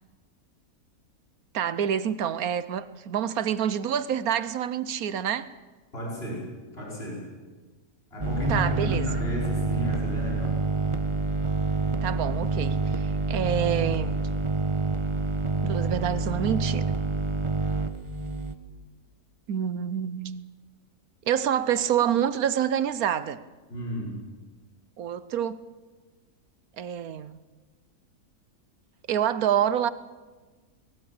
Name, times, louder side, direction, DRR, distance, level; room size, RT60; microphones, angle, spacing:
voice 1, 1.5-5.5 8.5-9.1 12.0-14.2 15.6-16.9 19.5-20.5 21.3-23.4 25.0-25.6 26.8-27.4 29.1-29.9, right 9 dB, 70° right, 1.3 m, -27 dB
voice 2, 5.9-6.5 6.7-7.3 8.1-10.6 23.7-24.2, left 1 dB, 40° left, 5.6 m, -33 dB
sound 1, 8.2-18.5, right 3 dB, 20° right, 1.2 m, -27 dB
20.5 x 18.0 x 8.7 m
omnidirectional pair, 1.6 m